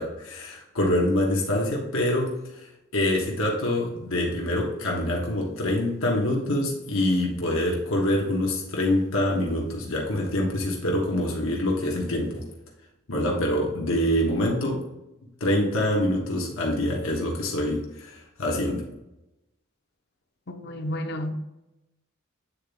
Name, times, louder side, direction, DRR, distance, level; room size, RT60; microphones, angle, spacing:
voice 1, 0.0-2.3 2.6-12.4 13.1-14.8 15.4-18.8, left 1 dB, 85° left, 1.3 m, -25 dB
voice 2, 20.5-21.4, left 1 dB, 50° left, 0.7 m, -31 dB
8.7 x 4.0 x 3.5 m
head